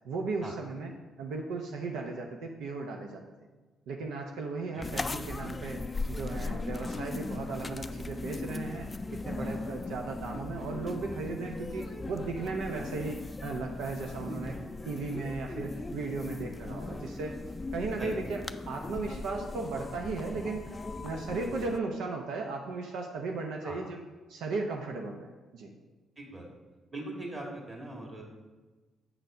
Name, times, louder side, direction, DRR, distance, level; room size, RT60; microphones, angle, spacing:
voice 1, 0.0-0.9 1.2-3.2 3.9-14.6 14.8-17.4 17.7-18.4 18.7-20.8 21.0-24.0 24.3-25.7, right 3 dB, 85° right, 2 dB, 0.7 m, -36 dB
sound 1, 4.8-21.8, left 3 dB, 20° left, 0.3 m, -38 dB
voice 2, 26.9-28.2, right 1 dB, 30° right, -1 dB, 2.1 m, -40 dB
7.8 x 4.0 x 5.6 m, 1.3 s
cardioid pair, 90°, 0 cm